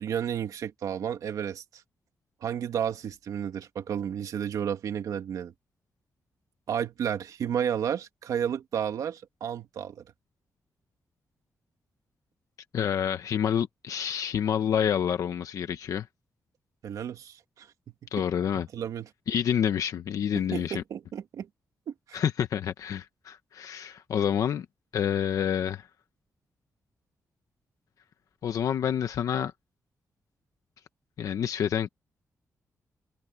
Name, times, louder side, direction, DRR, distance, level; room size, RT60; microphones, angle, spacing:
voice 1, 0.0-1.8 2.4-5.5 6.7-10.0 16.8-17.7 18.7-19.1 20.3-21.5 21.9-22.2, right 8 dB, 90° right, 2.3 m, -32 dB
voice 2, 12.7-16.1 18.1-18.7 19.3-20.8 22.1-24.7 24.9-25.9 28.4-29.5 31.2-31.9, left 8 dB, 80° left, 1.1 m, -28 dB
wide cardioid pair, 135°, 6 cm